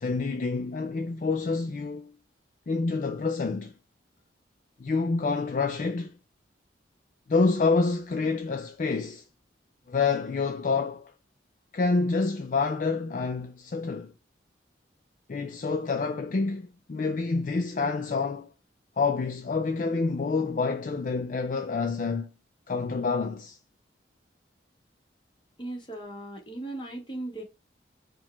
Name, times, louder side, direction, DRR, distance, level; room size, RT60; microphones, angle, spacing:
voice 1, 0.0-2.1 2.7-3.7 4.8-6.2 7.3-9.2 9.9-11.1 11.7-14.1 15.3-18.5 19.0-22.3 22.7-23.6, left 4 dB, 45° left, 0.4 m, -27 dB
voice 2, 25.6-27.4, right 2 dB, 25° left, 1.2 m, -37 dB
4.5 x 2.3 x 4.2 m
head